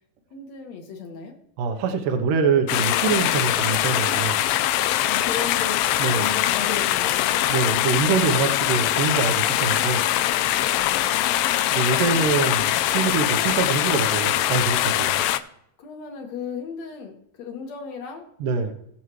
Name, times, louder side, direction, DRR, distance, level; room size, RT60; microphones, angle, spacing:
voice 1, 0.3-1.3 5.0-7.5 10.7-11.8 15.8-18.3, left 5 dB, 55° left, 3 dB, 2.6 m, -36 dB
voice 2, 1.6-4.5 6.0-6.3 7.5-10.0 11.7-15.2 18.4-18.7, right 5 dB, 70° right, 6 dB, 2.4 m, -24 dB
sound 1, 2.7-15.4, left 13 dB, 80° left, 2.3 m, -22 dB
19.5 x 7.2 x 3.2 m, 0.75 s
omnidirectional pair, 4.3 m